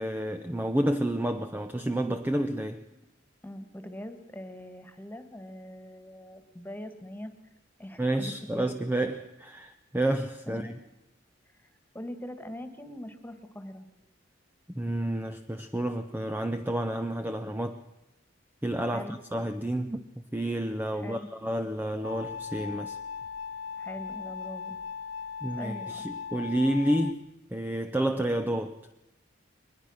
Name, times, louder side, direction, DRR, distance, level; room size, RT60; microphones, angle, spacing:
voice 1, 0.0-2.9 8.0-10.8 14.7-17.8 18.6-23.0 25.4-28.8, right 1 dB, 10° right, 0.6 m, -30 dB
voice 2, 3.4-7.3 7.8-8.7 10.5-10.8 11.5-11.7 11.9-13.9 18.9-19.2 20.9-21.3 23.8-24.8 25.6-26.1, left 1 dB, 10° left, 1.8 m, -42 dB
sound 1, 22.0-27.1, left 6 dB, 85° left, 0.9 m, -38 dB
22.0 x 20.5 x 6.5 m
head